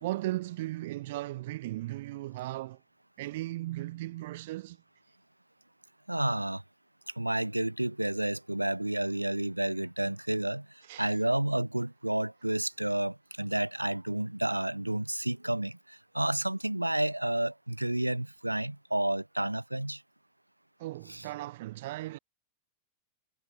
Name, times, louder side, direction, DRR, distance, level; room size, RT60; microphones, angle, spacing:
voice 1, 0.0-2.8 3.2-4.8 10.8-11.1 20.8-22.2, right 17 dB, 55° right, 0.7 m, -36 dB
voice 2, 6.1-6.6 7.2-10.7 11.0-20.0 21.1-21.2, right 1 dB, 85° right, 1.2 m, -30 dB
figure-of-eight pair, 90°, 0 cm